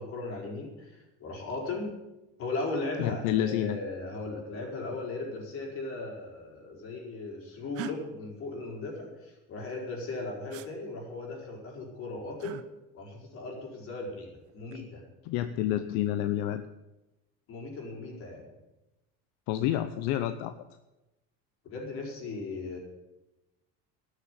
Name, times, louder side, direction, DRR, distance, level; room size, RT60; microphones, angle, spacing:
voice 1, 0.0-1.9 2.4-12.6 12.9-15.0 17.5-18.5 21.6-22.8, left 3 dB, 50° left, 0 dB, 4.6 m, -37 dB
voice 2, 3.0-3.8 15.3-16.6 19.5-20.5, left 12 dB, 80° left, 10 dB, 0.7 m, -29 dB
sound 1, 7.7-8.0 10.5-10.7 12.4-12.7 14.4-14.9, right 14 dB, 55° right, 0.8 m, -40 dB
13.0 x 6.8 x 9.7 m, 0.98 s
cardioid pair, 140°, 29 cm